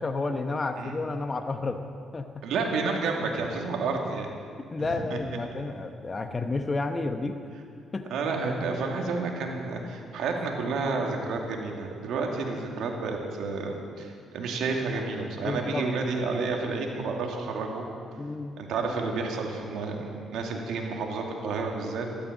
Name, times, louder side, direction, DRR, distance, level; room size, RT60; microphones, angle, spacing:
voice 1, 0.0-1.8 2.1-2.4 4.7-7.4 7.9-8.1 15.4-15.9 18.2-18.6, left 3 dB, 30° left, 6 dB, 1.0 m, -31 dB
voice 2, 2.4-4.3 4.8-4.9 8.1-17.9 18.6-22.1, right 4 dB, 80° right, 1 dB, 2.5 m, -30 dB
13.5 x 13.0 x 8.1 m, 2.3 s
cardioid pair, 90°, 0 cm